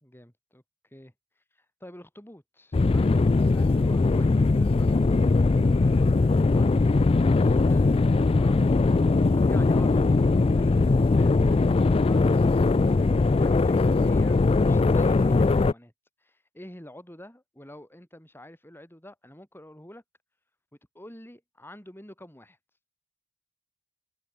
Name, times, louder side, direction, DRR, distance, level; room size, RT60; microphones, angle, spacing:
voice 1, 0.0-3.2 3.5-15.9 16.2-20.0 20.9-22.6, left 1 dB, 10° left, 3.8 m, -48 dB
sound 1, 2.7-15.7, left 3 dB, 25° left, 0.3 m, -21 dB
head